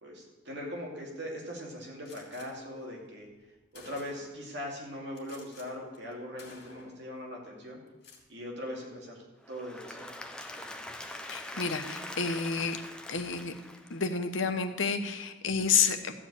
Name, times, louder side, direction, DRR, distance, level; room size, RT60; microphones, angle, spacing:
voice 1, 0.0-3.3 3.7-7.8 8.3-9.2 9.5-10.1, equal, 60° right, -1 dB, 2.6 m, -40 dB
Gunshot gunfire, 2.0-2.5 3.3-3.4 3.7-4.4 5.1-5.7 5.9-6.1 6.4-7.1 7.9-8.2, left 3 dB, 55° left, 2.9 m, -52 dB
Applause / Crowd, 9.4-14.4, left 1 dB, 5° left, 0.7 m, -43 dB
voice 2, 11.3-12.8 13.1-13.5 13.9-16.1, left 6 dB, 80° left, 7 dB, 1.1 m, -29 dB
14.0 x 4.9 x 8.7 m, 1.2 s
head